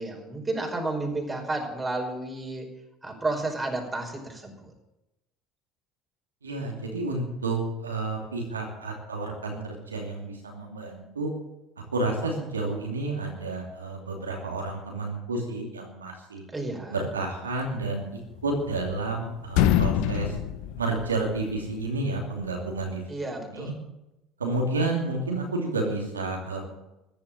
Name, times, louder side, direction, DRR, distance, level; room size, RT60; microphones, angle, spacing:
voice 1, 0.0-2.7 3.0-4.7 16.5-17.1 23.1-23.7, right 2 dB, 15° right, 2 dB, 5.3 m, -31 dB
voice 2, 6.4-11.3 11.9-16.4 16.9-20.3 20.8-23.0 23.5-23.7 24.4-26.7, right 2 dB, 90° right, 0 dB, 2.7 m, -30 dB
sound 1, 18.3-19.2 19.5-21.6, left 10 dB, 65° left, 0.9 m, -25 dB
14.5 x 10.5 x 7.7 m, 0.94 s
hypercardioid pair, 65°, 0 cm